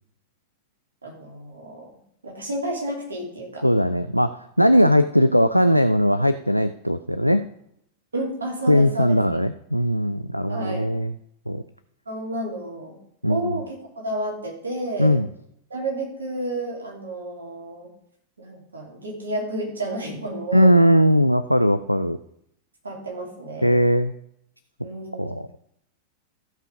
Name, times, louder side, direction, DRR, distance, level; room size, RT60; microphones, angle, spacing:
voice 1, 1.0-1.9 2.2-3.6 8.1-9.2 10.5-10.9 12.1-13.0 13.3-15.2 15.7-17.9 18.4-20.7 22.8-23.8 24.8-25.3, right 1 dB, 75° right, 0 dB, 3.1 m, -31 dB
voice 2, 3.6-7.5 8.7-11.1 11.5-11.6 13.2-13.6 15.0-15.3 20.5-22.2 23.6-24.1 25.2-25.5, equal, 90° right, 13 dB, 0.4 m, -19 dB
14.5 x 5.7 x 5.3 m, 0.73 s
figure-of-eight pair, 90°, 0 cm